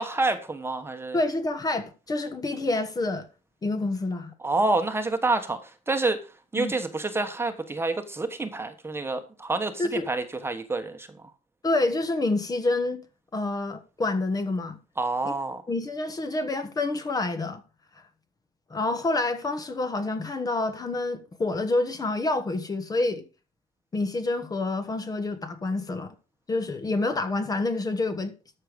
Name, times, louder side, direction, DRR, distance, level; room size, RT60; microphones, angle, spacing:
voice 1, 0.0-1.2 4.4-6.2 6.5-11.1 15.0-15.6, right 2 dB, 15° right, 1.3 m, -28 dB
voice 2, 1.1-3.3 3.6-4.3 6.5-6.7 9.8-10.1 11.6-13.0 13.3-14.8 15.2-15.3 15.7-17.6 18.7-23.2 23.9-26.1 26.5-28.3, left 2 dB, 25° left, 1.4 m, -27 dB
13.5 x 6.5 x 5.2 m
cardioid pair, 135°, 15 cm